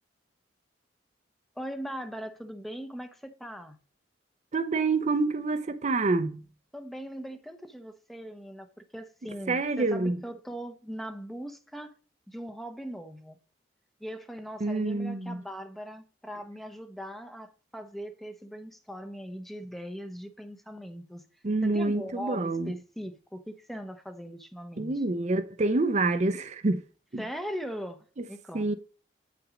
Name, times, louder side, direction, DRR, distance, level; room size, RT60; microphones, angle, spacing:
voice 1, 1.6-3.8 6.7-11.9 12.3-13.4 14.0-21.2 21.6-25.0 27.2-28.8, equal, ahead, 0.7 m, -40 dB
voice 2, 4.5-6.4 9.5-10.2 14.6-15.4 21.4-22.7 24.8-26.8 27.1-27.2 28.2-28.3 28.5-28.7, right 3 dB, 40° right, 0.6 m, -27 dB
8.5 x 5.9 x 5.0 m
head